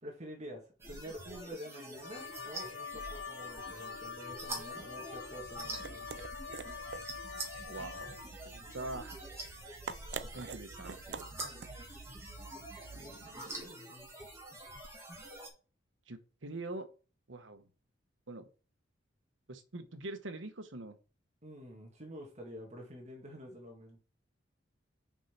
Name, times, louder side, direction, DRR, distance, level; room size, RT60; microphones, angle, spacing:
voice 1, 0.0-6.1 13.1-14.1 21.4-24.0, equal, 35° right, 2.1 m, -48 dB
sound 1, 0.8-15.5, right 1 dB, 15° right, 2.5 m, -46 dB
Wind instrument woodwind instrument, 2.0-8.6, left 6 dB, 85° left, 0.4 m, -45 dB
sound 2, 5.2-13.4, right 6 dB, 60° right, 0.4 m, -48 dB
voice 2, 7.7-9.2 10.3-11.2 12.9-13.6 16.1-16.9 17.3-17.7 18.3-18.5 19.5-21.0, right 2 dB, 90° right, 1.2 m, -44 dB
6.0 x 5.6 x 5.9 m
head